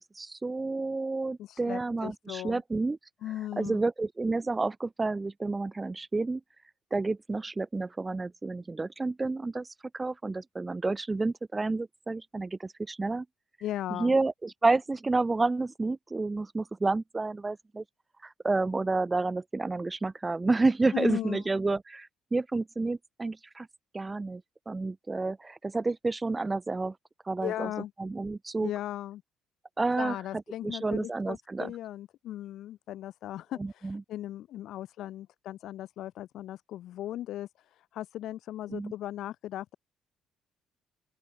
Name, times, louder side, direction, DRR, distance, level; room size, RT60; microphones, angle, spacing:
voice 1, 0.2-3.0 3.6-6.4 6.9-9.7 9.9-13.3 13.9-17.8 18.2-23.7 23.9-26.9 27.3-27.7 28.0-28.7 29.8-30.2 30.6-31.7 33.6-34.0 38.7-38.9, right 3 dB, 20° right, 0.4 m, -30 dB
voice 2, 1.4-2.6 3.2-3.8 13.6-14.1 20.9-21.4 27.4-27.9 28.6-29.2 30.0-39.7, left 13 dB, 75° left, 0.4 m, -37 dB
open air
cardioid pair, 120°, 0 cm